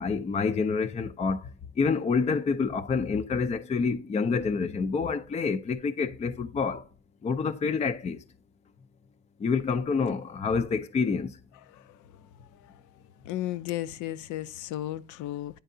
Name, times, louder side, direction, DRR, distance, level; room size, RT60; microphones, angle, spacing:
voice 1, 0.0-1.4 1.8-6.8 7.2-8.2 9.4-11.3, left 5 dB, 20° left, 0.5 m, -27 dB
voice 2, 11.7-12.0 12.6-12.7 13.2-15.6, left 14 dB, 70° left, 0.6 m, -34 dB
9.1 x 4.6 x 2.6 m
cardioid pair, 110°, 31 cm